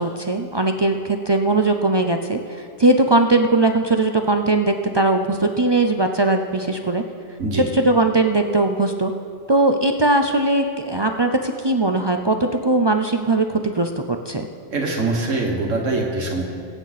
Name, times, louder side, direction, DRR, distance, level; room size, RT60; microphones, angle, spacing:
voice 1, 0.0-7.0 7.5-9.1 9.5-14.5, right 2 dB, 45° right, 5 dB, 0.3 m, -19 dB
voice 2, 14.7-16.4, right 2 dB, 80° right, 0 dB, 1.8 m, -23 dB
22.0 x 8.9 x 4.1 m, 2.2 s
omnidirectional pair, 1.3 m